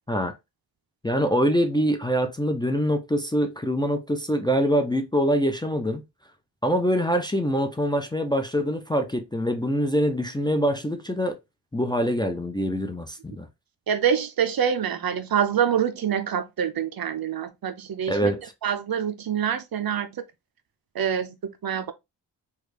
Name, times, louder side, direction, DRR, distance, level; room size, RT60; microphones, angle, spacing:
voice 1, 1.0-6.0 6.6-11.4 11.7-13.5 18.1-18.4, equal, 10° left, 0.4 m, -24 dB
voice 2, 13.9-18.3 18.6-20.2 20.9-21.9, right 8 dB, 55° right, 0.5 m, -26 dB
3.2 x 2.4 x 3.2 m
cardioid pair, 65°, 45 cm